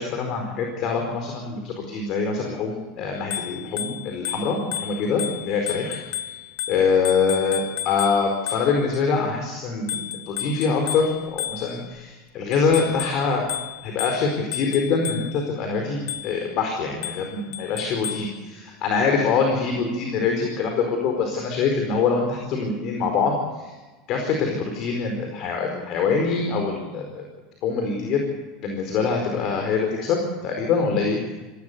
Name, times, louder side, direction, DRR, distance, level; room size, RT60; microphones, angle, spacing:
voice 1, 0.0-6.0 6.7-13.5 13.8-23.7 24.1-27.2 27.6-28.2 28.6-31.2, left 5 dB, 50° left, 3 dB, 4.6 m, -24 dB
Bicycle bell, 3.2-9.0 9.9-12.0 12.5-15.5 16.1-16.5 17.0-18.4, left 11 dB, 70° left, 1.5 m, -33 dB
25.0 x 16.5 x 6.9 m, 1.2 s
supercardioid pair, 130°, 0 cm